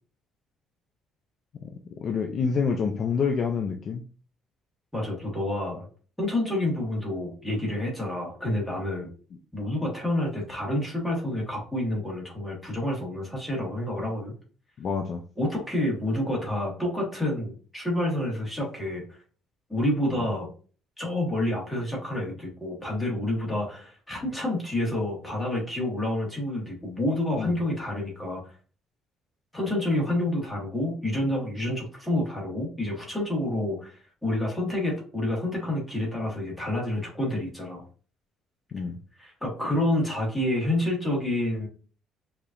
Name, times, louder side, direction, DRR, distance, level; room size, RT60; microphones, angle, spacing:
voice 1, 1.6-4.0 14.8-15.2 27.4-27.5 38.7-39.0, left 5 dB, 35° left, 4 dB, 0.4 m, -27 dB
voice 2, 4.9-5.9 6.2-9.1 9.5-14.3 15.4-19.2 19.7-20.5 21.0-28.4 29.5-37.8 39.2-41.7, left 1 dB, ahead, -4 dB, 1.5 m, -28 dB
5.0 x 2.8 x 2.5 m, 0.39 s
cardioid pair, 165°, 0 cm